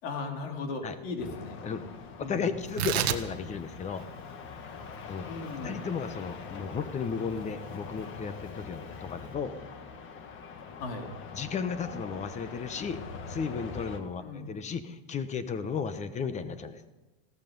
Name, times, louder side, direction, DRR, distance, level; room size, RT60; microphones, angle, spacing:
voice 1, 0.0-1.6 2.2-2.6 5.3-5.9 10.8-11.1 14.2-14.6, left 3 dB, 70° left, 3 dB, 3.3 m, -37 dB
sound 1, 1.2-14.0, left 5 dB, 40° left, 1.7 m, -43 dB
voice 2, 2.2-4.1 5.1-5.3 5.6-9.5 11.0-11.1 11.3-16.9, left 6 dB, 20° left, 12 dB, 1.0 m, -34 dB
Tearing, 2.6-9.3, right 10 dB, 90° right, 1.2 m, -37 dB
16.0 x 14.0 x 5.4 m, 1.1 s
supercardioid pair, 125°, 31 cm